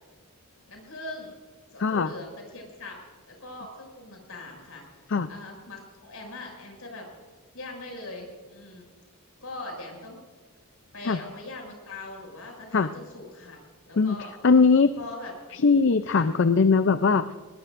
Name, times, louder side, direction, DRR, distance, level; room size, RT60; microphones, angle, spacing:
voice 1, 0.7-1.4 1.7-7.1 7.5-8.9 9.4-10.2 10.9-14.3 15.0-15.3 16.1-16.3, left 2 dB, 75° left, 1 dB, 6.3 m, -41 dB
voice 2, 1.8-2.1 5.1-5.3 11.0-11.2 12.7-12.9 14.0-14.2 14.4-14.9 15.5-17.4, left 4 dB, 55° left, 11 dB, 0.5 m, -20 dB
21.5 x 20.5 x 2.6 m, 1.5 s
head